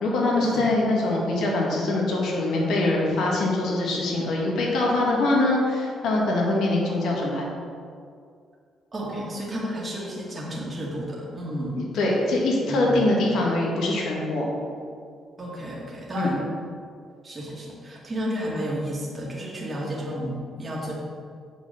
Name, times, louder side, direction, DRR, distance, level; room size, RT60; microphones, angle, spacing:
voice 1, 0.0-7.5 11.8-14.5 16.2-16.3, left 2 dB, 75° left, -2 dB, 1.9 m, -23 dB
voice 2, 8.9-11.8 12.7-12.9 15.4-16.4 17.2-20.9, equal, 25° right, -5 dB, 1.9 m, -31 dB
7.6 x 4.5 x 6.7 m, 2.3 s
cardioid pair, 90°, 0 cm